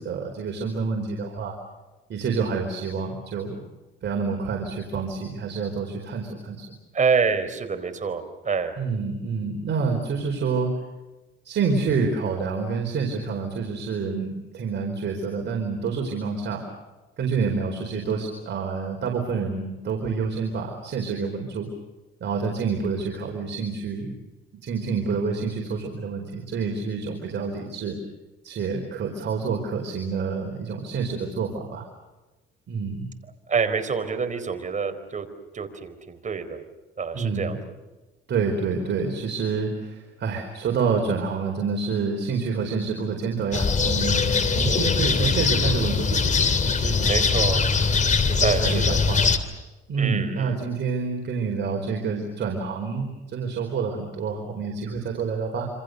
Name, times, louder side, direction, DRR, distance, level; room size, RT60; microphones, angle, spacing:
voice 1, 0.0-1.6 2.1-3.6 4.0-6.6 8.8-10.7 11.4-16.6 17.2-21.7 22.2-24.2 24.6-28.0 28.4-31.8 32.7-33.1 37.1-37.6 38.3-47.8 48.3-49.2 49.9-55.7, right 5 dB, 65° right, 1 dB, 4.7 m, -28 dB
voice 2, 6.9-8.7 33.5-35.3 35.5-36.6 37.0-37.6 47.0-47.6 48.4-49.0 50.0-50.6, right 5 dB, 40° right, 8 dB, 4.4 m, -26 dB
sound 1, 43.5-49.4, left 4 dB, 40° left, 3.1 m, -22 dB
27.5 x 26.5 x 6.7 m, 1.1 s
cardioid pair, 90°, 20 cm